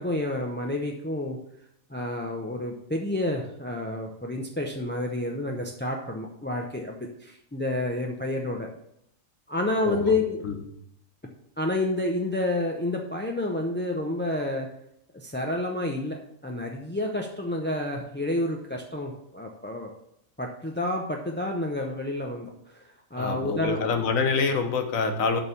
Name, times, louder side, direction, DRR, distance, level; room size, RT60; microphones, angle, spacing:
voice 1, 0.0-1.4 1.9-8.7 9.5-10.4 11.6-14.7 15.1-19.9 20.4-22.8 23.1-23.9, left 2 dB, 15° left, 0 dB, 0.4 m, -29 dB
voice 2, 23.2-25.4, left 4 dB, 80° left, 6 dB, 1.4 m, -26 dB
6.9 x 5.2 x 6.8 m, 0.76 s
omnidirectional pair, 1.4 m